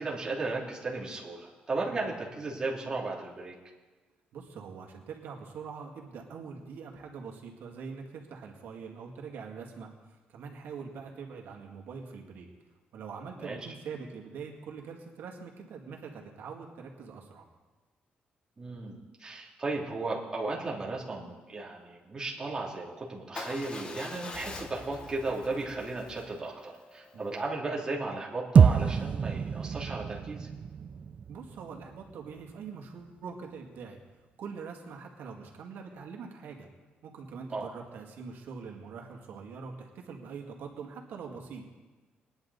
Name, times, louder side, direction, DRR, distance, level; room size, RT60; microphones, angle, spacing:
voice 1, 0.0-3.5 13.4-13.6 18.6-30.5 37.5-37.7, right 3 dB, 20° right, -4 dB, 2.6 m, -35 dB
voice 2, 4.3-9.9 10.3-12.5 12.9-17.5 27.1-27.3 31.3-34.0 34.4-36.7 37.0-41.7, right 5 dB, 75° right, 1 dB, 2.2 m, -43 dB
Motorcycle / Engine starting / Idling, 23.4-27.5, left 3 dB, 30° left, 1.0 m, -44 dB
sound 1, 28.6-32.9, right 6 dB, 35° right, 0.3 m, -26 dB
22.0 x 10.5 x 4.1 m, 1.3 s
cardioid pair, 155°, 3 cm